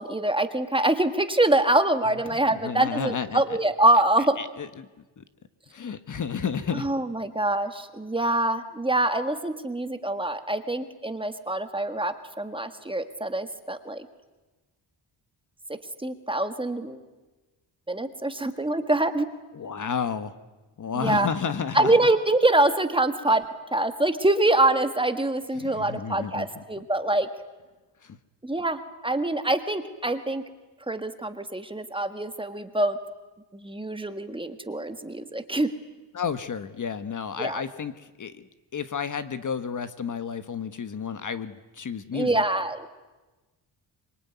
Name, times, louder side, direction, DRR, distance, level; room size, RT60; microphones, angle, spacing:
voice 1, 0.0-4.4 6.7-14.1 16.0-17.0 17.9-19.3 20.9-21.3 21.7-23.4 23.7-27.3 28.4-30.4 30.9-33.0 33.5-35.7 37.4-37.6 42.1-42.9, right 2 dB, 10° right, 8 dB, 1.6 m, -25 dB
voice 2, 2.3-3.4 4.4-4.9 5.2-5.3 5.7-6.9 19.5-20.3 20.8-21.9 25.5-26.6 28.0-28.2 36.1-38.5 38.7-42.4, left 6 dB, 45° left, 12 dB, 1.3 m, -31 dB
25.5 x 24.0 x 9.5 m, 1.2 s
cardioid pair, 125°, 45 cm